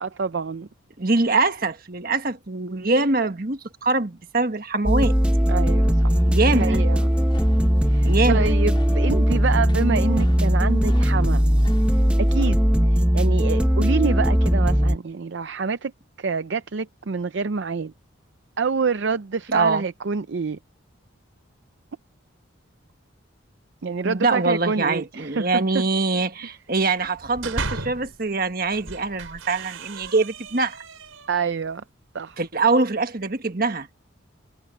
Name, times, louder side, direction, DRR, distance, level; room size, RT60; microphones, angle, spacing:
voice 1, 0.0-0.7 5.5-7.1 7.9-11.4 12.2-12.6 12.9-15.9 16.2-17.9 18.6-20.6 23.8-25.8 26.4-26.5 31.3-31.8 32.1-32.4, right 5 dB, 60° right, 0.5 m, -27 dB
voice 2, 1.0-5.1 6.3-6.8 8.0-8.5 19.5-19.8 24.0-30.8 32.4-33.9, right 3 dB, 45° right, 1.4 m, -23 dB
sound 1, 4.9-15.0, equal, 5° right, 0.8 m, -19 dB
sound 2, 6.0-12.5, left 1 dB, 25° left, 4.4 m, -45 dB
sound 3, 27.1-28.2 28.7-31.5, right 3 dB, 90° right, 6.0 m, -35 dB
head